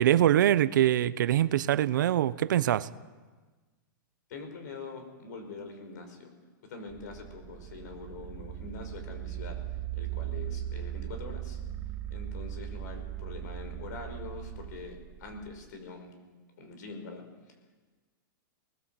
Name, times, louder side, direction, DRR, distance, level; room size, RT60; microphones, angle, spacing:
voice 1, 0.0-2.9, right 12 dB, 65° right, 16 dB, 0.8 m, -24 dB
voice 2, 4.3-6.3 6.6-9.6 10.0-11.6 12.1-16.2 16.6-17.3, left 4 dB, 55° left, 6 dB, 5.5 m, -44 dB
sound 1, 6.9-15.7, right 12 dB, 15° right, 0.6 m, -38 dB
24.0 x 20.0 x 7.8 m, 1.3 s
supercardioid pair, 175°, 11 cm